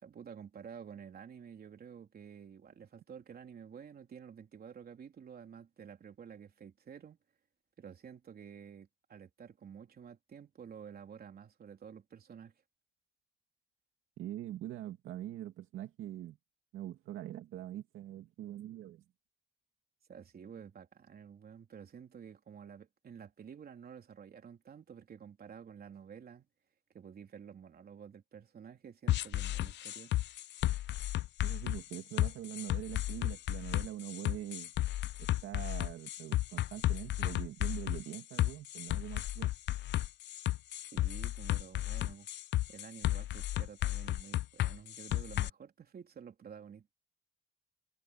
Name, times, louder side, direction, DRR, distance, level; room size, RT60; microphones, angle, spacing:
voice 1, 0.0-7.2 7.8-12.5 20.1-26.5 26.9-30.1 40.9-42.3 42.7-46.9, right 7 dB, 50° right, 3.5 m, -51 dB
voice 2, 14.2-16.4 16.7-19.0 31.4-34.7 35.2-39.5, right 13 dB, 85° right, 2.2 m, -43 dB
sound 1, 29.1-45.5, left 15 dB, 60° left, 0.4 m, -33 dB
cardioid pair, 90°, 20 cm